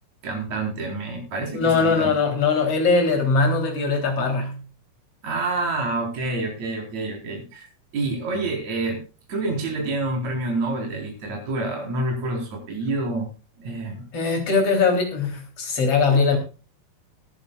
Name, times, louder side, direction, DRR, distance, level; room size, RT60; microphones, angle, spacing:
voice 1, 0.2-2.1 5.2-7.7 7.9-9.0 9.3-13.3 13.6-14.0, right 2 dB, 50° right, 1 dB, 5.5 m, -28 dB
voice 2, 1.5-4.6 14.1-16.4, left 4 dB, 40° left, 4 dB, 4.4 m, -21 dB
22.0 x 10.5 x 2.5 m, 0.33 s
omnidirectional pair, 4.4 m